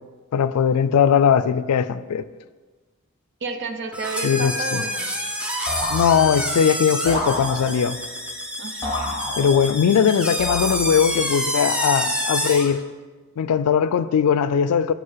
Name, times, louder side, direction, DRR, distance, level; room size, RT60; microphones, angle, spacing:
voice 1, 0.3-2.2 4.2-4.8 5.9-8.0 9.4-12.8 13.4-14.9, left 7 dB, 90° left, 15 dB, 0.4 m, -19 dB
voice 2, 3.4-5.1 8.6-9.2, right 4 dB, 50° right, 7 dB, 0.7 m, -31 dB
sound 1, 3.9-12.8, equal, 5° right, 0.7 m, -27 dB
sound 2, 5.7-6.6 7.1-8.0 8.8-9.8 10.4-11.1, left 1 dB, 20° left, 1.5 m, -30 dB
6.6 x 5.0 x 5.6 m, 1.3 s
head